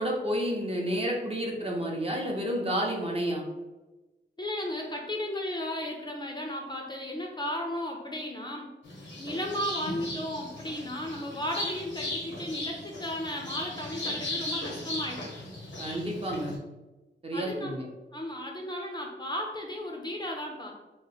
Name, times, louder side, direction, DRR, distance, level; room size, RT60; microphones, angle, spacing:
voice 1, 0.0-3.4 15.8-16.6 17.2-17.8, equal, 30° right, -1 dB, 0.7 m, -30 dB
voice 2, 4.4-8.7 9.2-15.3 17.3-17.7 18.1-20.7, left 1 dB, 25° left, 0 dB, 0.5 m, -35 dB
sound 1, 8.8-16.6, left 1 dB, 90° left, 0.9 m, -37 dB
3.0 x 2.0 x 3.9 m, 1.1 s
wide cardioid pair, 105°, 19 cm